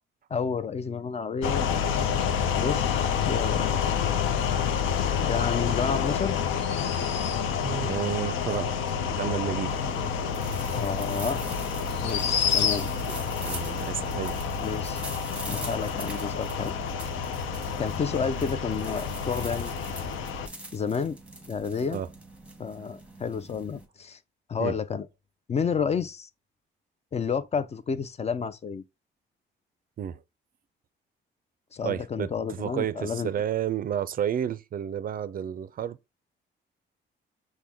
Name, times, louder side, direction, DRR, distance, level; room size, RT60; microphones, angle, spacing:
voice 1, 0.3-1.7 2.0-2.2 2.6-3.8 5.2-6.4 10.7-11.4 12.0-12.9 14.6-15.0 15.5-16.7 17.8-19.7 20.7-21.2 21.5-22.0 22.6-24.2 24.5-25.1 25.5-26.3 27.1-28.8 31.7-33.3, left 6 dB, 35° left, 0.4 m, -30 dB
sound 1, 1.4-20.5, left 7 dB, 85° left, 0.6 m, -29 dB
sound 2, 6.5-7.6 10.7-10.8 11.9-13.1, left 7 dB, 70° left, 0.9 m, -29 dB
voice 2, 7.6-8.7 9.1-9.7 13.1-14.4 21.9-22.1 24.6-24.8 30.0-30.2 31.8-36.0, right 9 dB, 45° right, 0.4 m, -31 dB
sound 3, 9.7-23.9, right 1 dB, 5° right, 1.0 m, -44 dB
6.0 x 2.1 x 3.5 m
cardioid pair, 90°, 20 cm